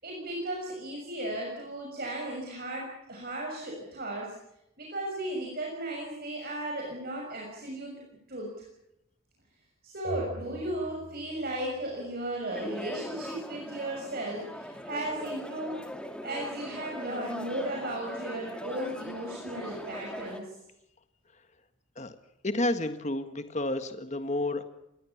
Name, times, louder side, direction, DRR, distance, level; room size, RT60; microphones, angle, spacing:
voice 1, 0.0-4.3 4.8-8.0 8.3-8.5 9.8-15.8 16.2-20.5, right 1 dB, 45° right, -1 dB, 6.5 m, -35 dB
sound 1, 12.5-20.4, equal, 5° left, 2.3 m, -40 dB
voice 2, 22.4-24.6, left 1 dB, 35° left, 9 dB, 1.6 m, -30 dB
27.5 x 22.0 x 7.2 m, 0.85 s
head